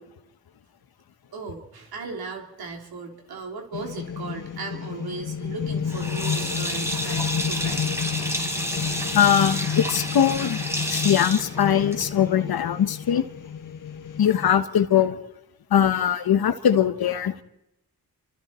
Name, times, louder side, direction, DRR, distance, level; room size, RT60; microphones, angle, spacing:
voice 1, 1.3-7.8, right 4 dB, 90° right, 2 dB, 3.1 m, -37 dB
sound 1, 3.7-14.5, left 7 dB, 60° left, 1.5 m, -31 dB
Sink (filling or washing), 5.9-12.3, equal, 5° right, 4.2 m, -30 dB
voice 2, 9.1-10.6 10.9-13.3 14.2-15.2 15.7-17.3, left 9 dB, 80° left, 11 dB, 1.3 m, -21 dB
27.5 x 25.0 x 4.4 m, 0.87 s
cardioid pair, 45°, 36 cm